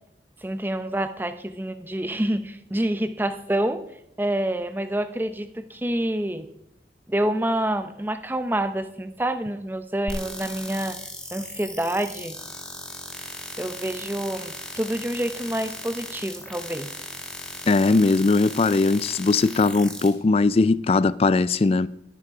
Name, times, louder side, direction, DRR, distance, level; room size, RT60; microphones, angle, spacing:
voice 1, 0.4-3.8 4.2-6.5 7.1-11.0 11.3-12.4 13.6-16.9, right 1 dB, 10° right, 0.7 m, -27 dB
sound 1, 10.1-20.1, left 1 dB, 5° left, 2.3 m, -37 dB
voice 2, 17.7-21.9, left 3 dB, 35° left, 0.3 m, -20 dB
12.5 x 10.5 x 4.9 m
head